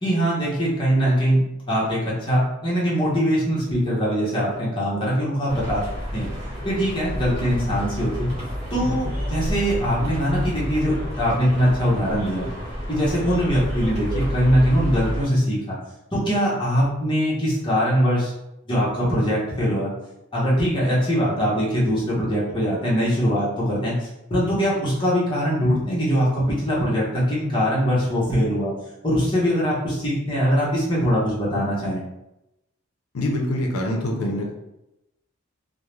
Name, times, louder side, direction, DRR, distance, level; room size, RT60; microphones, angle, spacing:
voice 1, 0.0-5.8 6.1-6.3 6.6-8.3 8.7-12.5 12.9-15.8 16.1-18.3 18.7-19.9 20.3-28.7 29.0-32.0, equal, 25° left, -7 dB, 0.7 m, -22 dB
sound 1, 5.5-15.3, equal, 30° right, 1.2 m, -30 dB
voice 2, 33.1-34.5, left 1 dB, 80° left, 0 dB, 0.5 m, -25 dB
2.3 x 2.0 x 3.0 m, 0.89 s
head